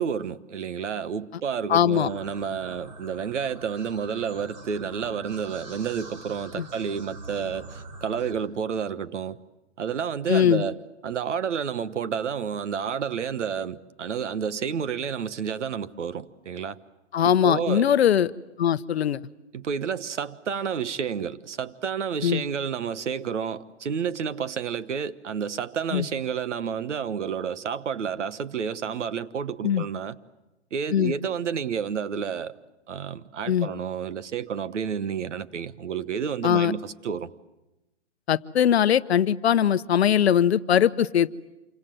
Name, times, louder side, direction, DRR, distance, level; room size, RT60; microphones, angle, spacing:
voice 1, 0.0-9.4 9.8-16.8 17.2-17.9 19.5-30.2 30.7-32.5 32.9-37.3, right 7 dB, 80° right, 1.3 m, -30 dB
voice 2, 1.7-2.1 6.6-6.7 10.3-10.6 17.1-18.3 18.6-19.2 22.2-22.4 25.9-26.0 29.6-29.9 30.9-31.1 33.5-33.7 36.4-36.7 38.3-41.3, left 9 dB, 60° left, 0.9 m, -21 dB
sound 1, 1.9-8.3, right 2 dB, 35° right, 4.0 m, -43 dB
27.5 x 25.0 x 7.8 m
hypercardioid pair, 170°, 36 cm